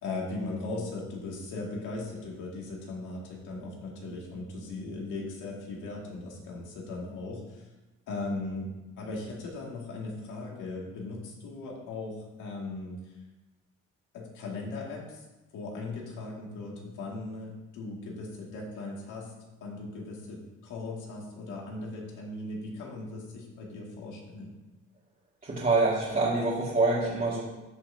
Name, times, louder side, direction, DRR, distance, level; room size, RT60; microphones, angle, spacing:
voice 1, 0.0-7.7 8.1-13.1 14.1-15.2 15.5-19.3 19.6-24.5, left 2 dB, 90° left, -2 dB, 2.2 m, -38 dB
voice 2, 25.4-27.4, right 3 dB, 30° right, -7 dB, 2.0 m, -26 dB
13.5 x 5.8 x 2.7 m, 1.1 s
cardioid pair, 90°, 30 cm